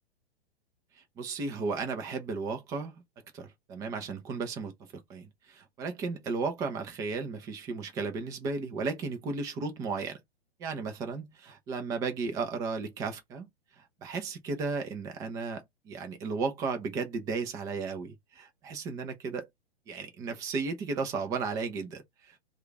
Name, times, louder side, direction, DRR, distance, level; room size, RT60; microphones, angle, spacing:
voice 1, 1.2-3.0 3.3-10.2 10.6-13.5 13.8-19.5 19.9-22.4, right 4 dB, 10° right, 0.4 m, -34 dB
2.4 x 2.3 x 3.8 m
figure-of-eight pair, 110°, 32 cm